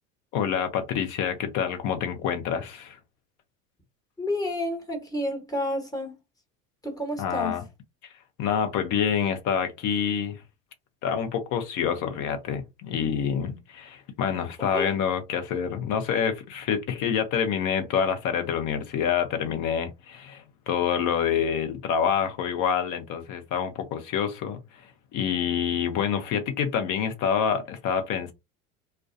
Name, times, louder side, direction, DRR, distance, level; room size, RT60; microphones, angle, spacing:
voice 1, 0.3-3.0 7.2-7.6 8.4-10.4 11.0-24.6 25.1-28.3, left 7 dB, 50° left, 0.8 m, -27 dB
voice 2, 4.2-6.2 6.8-7.6 14.7-14.9, left 1 dB, 10° left, 1.1 m, -30 dB
2.2 x 2.2 x 2.6 m
hypercardioid pair, 80°, 40 cm